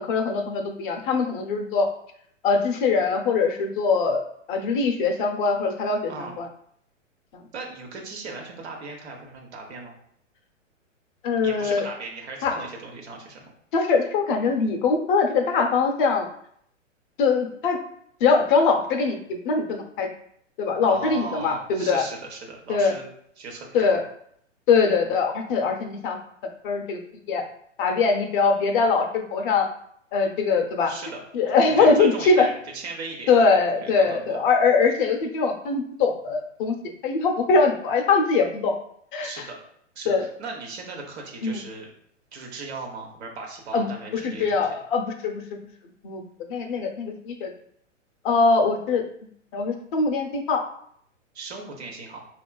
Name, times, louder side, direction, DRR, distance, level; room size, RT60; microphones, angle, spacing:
voice 1, 0.0-1.9 2.4-4.2 4.5-6.5 11.2-11.8 12.4-12.5 13.7-16.3 17.2-17.8 18.2-20.1 20.6-22.0 22.7-22.9 23.7-24.0 24.7-26.2 26.6-27.0 27.3-27.4 27.8-29.7 30.1-30.9 31.3-32.5 33.3-36.7 37.0-38.8 39.1-39.5 40.1-40.2 41.4-41.6 43.7-43.9 44.1-45.6 46.0-46.2 46.5-47.5 48.2-49.0 49.5-50.6, left 4 dB, 40° left, 4 dB, 0.6 m, -22 dB
voice 2, 6.1-6.4 7.5-9.9 11.4-13.5 20.9-23.1 23.4-24.0 30.9-31.2 31.7-33.3 33.8-34.4 39.2-39.6 39.9-41.9 42.3-44.7 51.3-52.2, right 3 dB, 55° right, 0 dB, 1.0 m, -37 dB
4.6 x 2.3 x 2.2 m, 0.67 s
hypercardioid pair, 115°, 38 cm